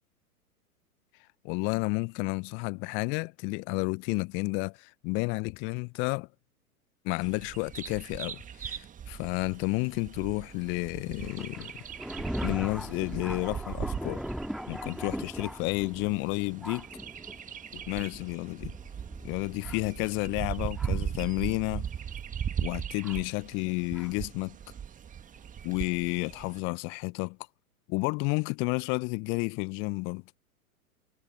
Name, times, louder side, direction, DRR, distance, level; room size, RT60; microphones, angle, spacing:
voice 1, 1.4-6.3 7.0-11.7 12.4-14.2 14.7-16.9 17.7-18.7 19.2-21.9 22.6-24.6 25.6-27.4 27.9-30.2, left 30 dB, 25° left, 0.6 m, -31 dB
Bird vocalization bird call bird song, 7.2-26.6, right 8 dB, 15° right, 1.8 m, -39 dB
Thunder, 11.2-21.1 21.9-22.0 23.0-23.2 23.9-24.1, equal, ahead, 1.9 m, -40 dB
figure-of-eight pair, 100°, 44 cm